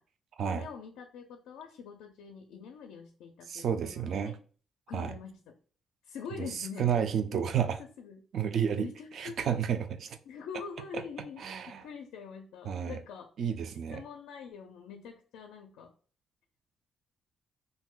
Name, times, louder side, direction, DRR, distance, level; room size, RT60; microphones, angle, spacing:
voice 1, 0.4-4.3 4.9-5.5 6.1-6.9 7.3-7.6 8.0-8.2 8.8-9.4 10.3-13.3 13.9-15.9, left 6 dB, 90° left, 0.4 m, -44 dB
voice 2, 3.5-4.4 4.9-5.1 6.4-7.8 8.3-8.9 9.1-10.2 11.4-11.9 12.6-13.0 13.4-14.0, right 8 dB, 65° right, 0.4 m, -31 dB
2.6 x 2.1 x 3.7 m
cardioid pair, 90°, 0 cm